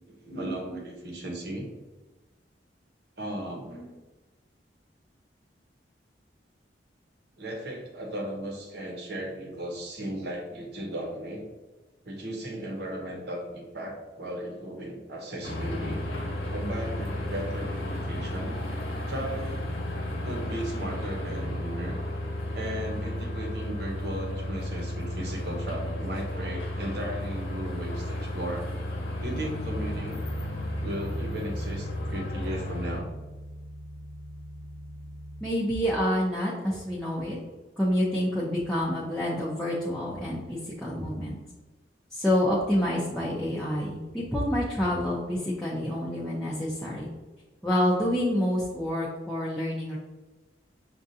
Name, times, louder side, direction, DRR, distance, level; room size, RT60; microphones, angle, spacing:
voice 1, 0.2-1.7 3.2-3.9 7.4-11.5 12.0-16.0 16.5-18.6 19.1-19.7 20.2-22.0 22.5-28.7 29.2-30.2 30.8-33.1, right 1 dB, 65° right, 0 dB, 0.9 m, -36 dB
sound 1, 15.4-33.0, left 1 dB, 70° left, 1.1 m, -33 dB
Bass guitar, 29.2-35.5, equal, 90° right, 1.1 m, -40 dB
voice 2, 35.4-37.4 37.8-41.4 42.1-47.1 47.6-50.0, equal, 5° left, -8 dB, 0.6 m, -28 dB
6.3 x 2.4 x 2.7 m, 1.2 s
head